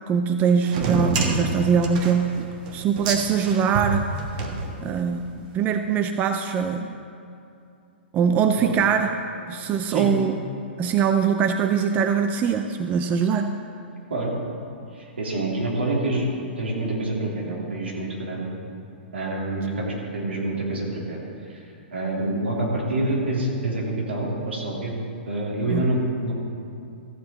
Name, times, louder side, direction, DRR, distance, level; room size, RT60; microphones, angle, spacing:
voice 1, 0.1-4.1 4.8-7.0 8.1-9.1 9.5-10.4 10.8-13.6 25.7-25.8, right 6 dB, 25° right, 7 dB, 0.5 m, -22 dB
sound 1, 0.6-5.2, right 3 dB, 50° right, 1.4 m, -28 dB
voice 2, 14.9-16.3 16.6-18.5 19.1-24.9 25.3-26.3, right 2 dB, 75° right, -3 dB, 2.7 m, -27 dB
14.5 x 7.8 x 4.1 m, 2.6 s
figure-of-eight pair, 115°, 6 cm